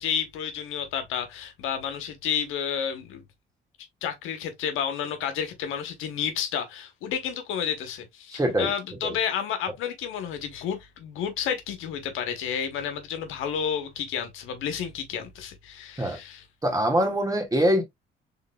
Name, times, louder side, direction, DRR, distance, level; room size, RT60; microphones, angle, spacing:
voice 1, 0.0-3.2 4.0-16.4, left 8 dB, 90° left, 0.9 m, -31 dB
voice 2, 8.3-8.7 9.0-9.1 16.0-16.2 16.6-17.8, equal, 15° right, 1.7 m, -23 dB
3.9 x 3.7 x 2.2 m
cardioid pair, 90°, 20 cm